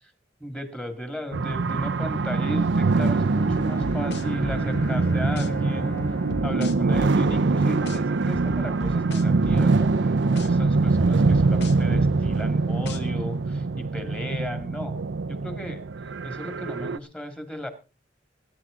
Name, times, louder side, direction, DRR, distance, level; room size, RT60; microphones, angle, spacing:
voice 1, 0.4-5.9 6.4-14.9 15.3-15.8 16.2-17.7, equal, 5° left, 8 dB, 2.1 m, -35 dB
sound 1, 1.3-17.0, right 3 dB, 80° right, 0.6 m, -23 dB
Bowed string instrument, 3.0-7.8, left 1 dB, 85° left, 2.1 m, -39 dB
sound 2, 3.5-4.9 5.4-5.5 6.0-7.4 7.9-8.0 8.3-9.9 10.4-10.5 11.0-12.4 12.9-13.0, left 1 dB, 65° left, 1.2 m, -35 dB
21.5 x 9.6 x 3.7 m, 0.32 s
head